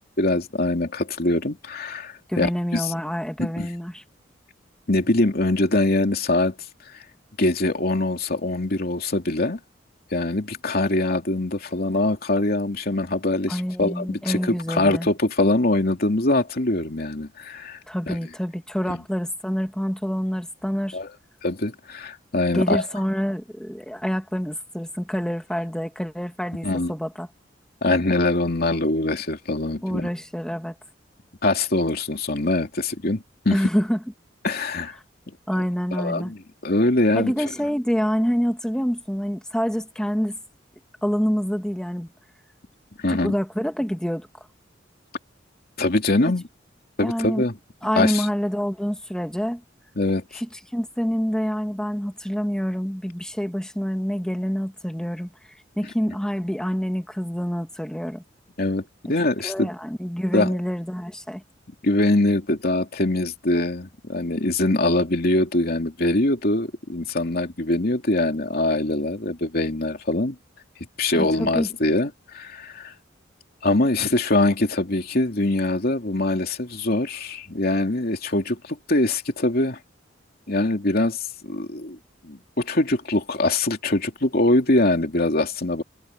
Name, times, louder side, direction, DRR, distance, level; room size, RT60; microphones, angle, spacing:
voice 1, 0.2-2.9 3.4-3.7 4.9-6.5 7.4-9.6 10.1-17.8 18.1-18.2 20.9-21.1 21.4-22.8 26.6-26.9 27.8-30.1 31.4-33.6 34.4-34.9 35.9-37.3 43.0-43.3 45.8-46.4 47.0-47.5 47.9-48.3 50.0-50.2 58.6-58.8 59.1-59.7 60.3-60.6 61.8-70.4 71.0-72.9 73.6-79.8 80.5-82.0 82.2-85.8, left 2 dB, 55° left, 2.9 m, -23 dB
voice 2, 2.3-4.0 13.5-15.1 17.9-21.0 22.5-27.3 29.8-30.7 33.5-34.0 35.5-36.3 37.1-40.4 41.0-42.1 43.1-44.5 47.0-47.4 47.8-49.6 50.3-50.5 50.7-55.3 55.8-58.2 59.4-61.4 71.1-71.7, equal, 5° left, 1.5 m, -26 dB
head